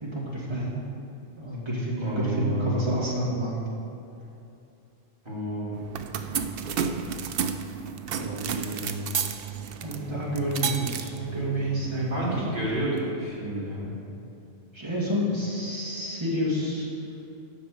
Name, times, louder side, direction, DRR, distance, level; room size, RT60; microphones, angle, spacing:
voice 1, 0.0-0.8 1.4-3.7 9.8-12.3 14.7-16.9, equal, 20° right, -6 dB, 2.3 m, -29 dB
voice 2, 2.0-3.0 5.2-5.7 8.1-9.0 12.1-13.9, equal, 45° right, -8 dB, 3.1 m, -31 dB
sound 1, 5.7-13.1, right 7 dB, 60° right, 0.7 m, -33 dB
8.5 x 6.1 x 8.0 m, 2.7 s
omnidirectional pair, 1.3 m